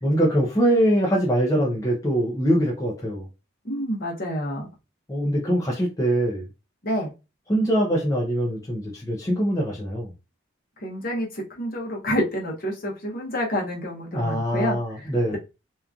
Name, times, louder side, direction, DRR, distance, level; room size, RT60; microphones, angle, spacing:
voice 1, 0.0-3.3 5.1-6.5 7.5-10.1 14.1-15.4, equal, 15° left, 0.5 m, -23 dB
voice 2, 3.6-4.7 6.8-7.1 10.8-14.8 15.3-15.4, equal, 45° left, 0.8 m, -28 dB
2.9 x 2.3 x 2.4 m
head